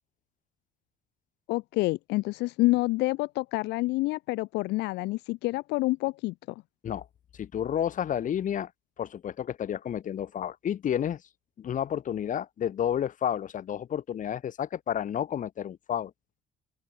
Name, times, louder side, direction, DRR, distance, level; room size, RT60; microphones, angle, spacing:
voice 1, 1.5-6.6, left 21 dB, 85° left, 0.9 m, -28 dB
voice 2, 7.3-8.7 9.0-11.2 11.6-16.1, left 9 dB, 50° left, 2.6 m, -31 dB
open air
cardioid pair, 110°, 17 cm